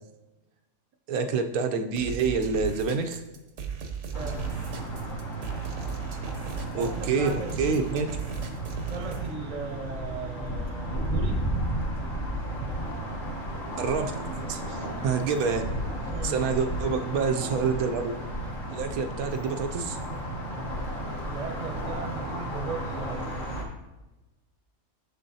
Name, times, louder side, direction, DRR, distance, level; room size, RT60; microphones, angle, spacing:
voice 1, 1.1-3.2 6.7-8.1 13.8-14.1 14.5-15.6 16.2-18.1 18.7-20.0, right 5 dB, 85° right, 5 dB, 1.1 m, -27 dB
sound 1, 2.0-9.3, right 6 dB, 60° right, 1.0 m, -36 dB
sound 2, 4.1-23.6, right 1 dB, 40° left, 1.2 m, -33 dB
voice 2, 4.1-4.6 6.7-7.8 8.9-11.6 16.1-16.5 21.2-23.4, right 4 dB, 35° right, 3 dB, 0.8 m, -38 dB
7.0 x 6.8 x 2.7 m, 1.0 s
omnidirectional pair, 1.5 m